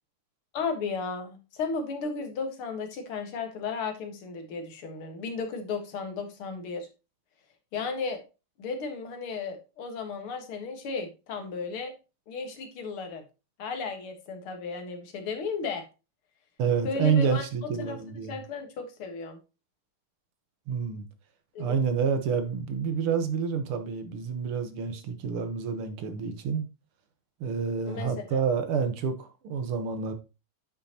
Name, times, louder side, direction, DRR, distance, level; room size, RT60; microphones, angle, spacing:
voice 1, 0.5-6.9 7.7-8.2 8.6-11.9 12.3-13.2 13.6-15.8 16.8-17.4 17.8-18.0 18.3-19.4 21.5-21.7 27.9-28.4, left 4 dB, 75° left, 2.4 m, -34 dB
voice 2, 16.6-18.4 20.7-21.1 21.6-26.7 27.4-30.1, right 6 dB, 80° right, 2.1 m, -28 dB
9.6 x 6.2 x 2.9 m
omnidirectional pair, 2.4 m